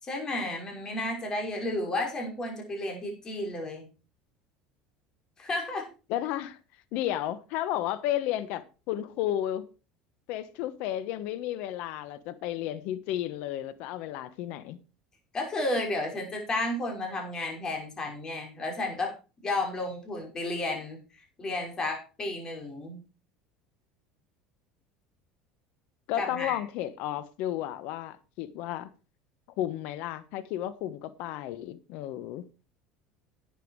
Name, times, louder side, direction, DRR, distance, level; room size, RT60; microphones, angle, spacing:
voice 1, 0.0-3.9 5.4-5.9 15.3-19.1 19.4-23.0 26.2-26.6, left 2 dB, 25° left, 5.6 m, -32 dB
voice 2, 6.1-6.6 6.9-9.6 10.3-14.8 26.1-28.9 29.6-32.4, left 12 dB, 65° left, 1.1 m, -33 dB
11.5 x 9.3 x 4.7 m
supercardioid pair, 125°, 2 cm